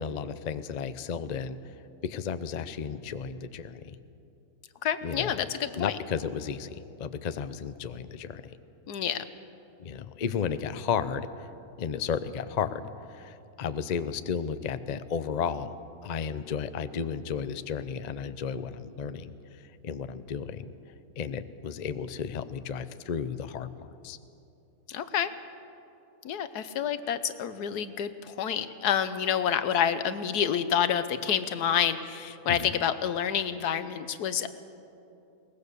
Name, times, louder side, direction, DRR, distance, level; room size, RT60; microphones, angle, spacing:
voice 1, 0.0-1.6 2.0-3.9 5.0-5.4 5.8-8.4 9.8-11.3 11.8-12.8 13.1-15.7 16.0-19.3 19.8-20.7 21.2-23.7 24.0-24.2 32.5-32.7, left 7 dB, 50° left, 12 dB, 0.5 m, -33 dB
voice 2, 4.8-5.9 8.9-9.3 24.9-25.3 26.2-34.5, left 8 dB, 90° left, 12 dB, 1.4 m, -28 dB
22.0 x 19.0 x 6.8 m, 2.8 s
omnidirectional pair, 1.6 m